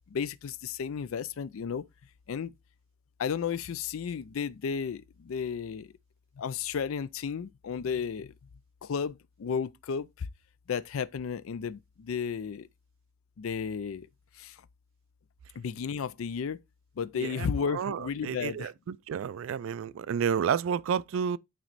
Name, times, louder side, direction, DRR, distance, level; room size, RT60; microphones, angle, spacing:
voice 1, 0.1-1.8 2.3-2.5 3.2-5.9 6.4-8.3 8.8-10.3 10.7-12.7 13.4-14.1 14.3-14.6 15.5-16.6 17.0-18.7, left 6 dB, 70° left, 0.4 m, -33 dB
voice 2, 17.2-17.5 17.7-21.4, right 7 dB, 65° right, 0.3 m, -31 dB
8.9 x 3.1 x 4.0 m
head